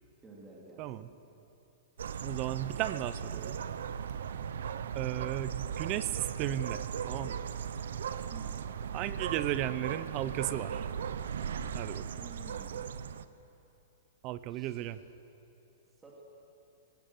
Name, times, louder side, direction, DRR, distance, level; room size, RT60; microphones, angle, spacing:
voice 1, 0.2-1.1 8.3-8.6 12.2-12.9 14.5-14.7 16.0-16.2, right 3 dB, 10° right, -3 dB, 2.6 m, -51 dB
voice 2, 0.8-1.1 2.2-3.6 4.9-7.5 8.9-10.9 11.7-12.1 14.2-15.0, right 13 dB, 30° right, 15 dB, 0.7 m, -35 dB
sound 1, 2.0-13.3, right 8 dB, 85° right, 0.9 m, -37 dB
23.5 x 17.5 x 7.8 m, 2.9 s
supercardioid pair, 170°, 0 cm